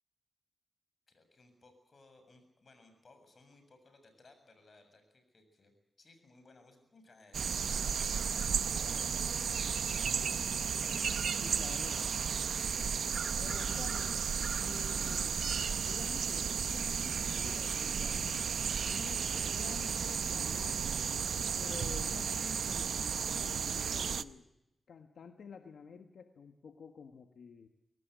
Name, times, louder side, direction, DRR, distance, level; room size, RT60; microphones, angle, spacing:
voice 1, 1.1-5.7 6.0-9.8, left 3 dB, 55° left, 7 dB, 7.2 m, -61 dB
sound 1, 7.3-24.2, right 7 dB, 85° right, 0.7 m, -34 dB
voice 2, 11.4-12.0 13.4-14.1 14.6-15.3 15.8-18.5 18.9-19.2 19.5-21.1 21.6-24.5 24.9-27.7, left 6 dB, 85° left, 7 dB, 1.5 m, -50 dB
24.0 x 18.0 x 8.0 m, 0.88 s
cardioid pair, 65°, 0 cm